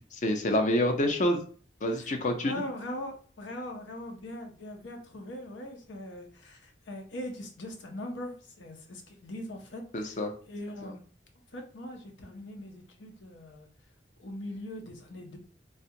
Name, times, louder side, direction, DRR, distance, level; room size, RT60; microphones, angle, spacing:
voice 1, 0.1-1.4 1.8-2.5 9.9-10.3 10.8-10.9, left 1 dB, 45° left, 4 dB, 0.5 m, -27 dB
voice 2, 2.4-10.2 10.5-11.0 11.5-13.7 14.2-15.4, left 1 dB, 90° left, 3 dB, 0.8 m, -41 dB
3.3 x 2.3 x 2.7 m, 0.42 s
head